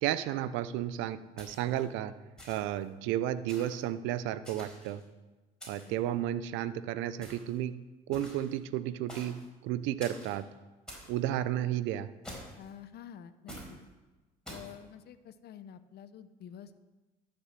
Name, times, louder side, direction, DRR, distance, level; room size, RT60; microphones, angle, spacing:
voice 1, 0.0-2.1 2.5-5.0 5.7-7.7 8.1-9.3 9.6-10.4 11.1-12.1, right 12 dB, 75° right, 14 dB, 0.7 m, -32 dB
sound 1, 1.4-1.8 2.4-2.8 3.5-3.8 4.4-5.0 5.6-6.0 7.2-7.6 8.1-8.5 9.1-9.4 10.0-10.4 10.9-11.1 12.2-12.7 13.5-13.7 14.4-14.7, equal, 5° left, 4.7 m, -47 dB
voice 2, 12.6-13.8 14.5-16.8, left 9 dB, 55° left, 12 dB, 0.9 m, -49 dB
12.0 x 7.0 x 7.6 m, 1.2 s
supercardioid pair, 80°, 20 cm